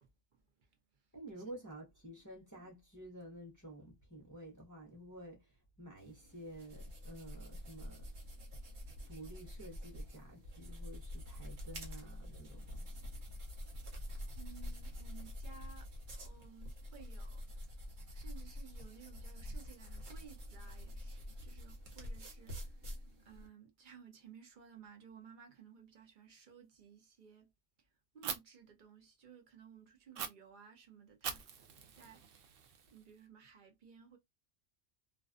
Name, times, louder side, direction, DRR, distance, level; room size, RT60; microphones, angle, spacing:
voice 1, 0.0-1.1 1.4-1.5 14.4-15.9 16.2-17.6 18.1-27.5 27.8-31.5 31.9-32.5 32.8-34.2, right 7 dB, 50° right, 0.7 m, -58 dB
voice 2, 1.1-8.1 9.1-13.0, right 1 dB, 20° left, 0.7 m, -51 dB
sound 1, 6.0-23.5, left 1 dB, 65° right, 1.1 m, -47 dB
Fire, 28.2-28.4 30.1-30.3 31.2-33.2, right 7 dB, 90° right, 0.9 m, -43 dB
2.5 x 2.2 x 2.4 m
omnidirectional pair, 1.3 m